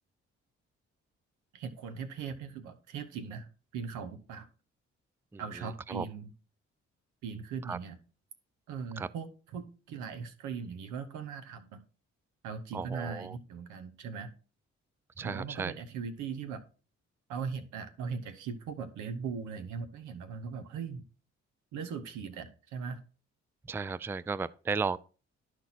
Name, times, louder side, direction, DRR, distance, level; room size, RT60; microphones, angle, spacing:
voice 1, 1.5-4.5 5.4-6.3 7.2-8.0 8.7-11.8 12.4-14.3 15.2-16.6 17.3-21.0 21.7-23.0, right 6 dB, 85° right, 1.0 m, -39 dB
voice 2, 5.3-6.1 7.6-7.8 9.0-9.1 12.7-13.4 15.2-15.7 23.6-25.0, right 4 dB, 10° right, 0.3 m, -35 dB
11.5 x 4.4 x 4.1 m
supercardioid pair, 50°, 29 cm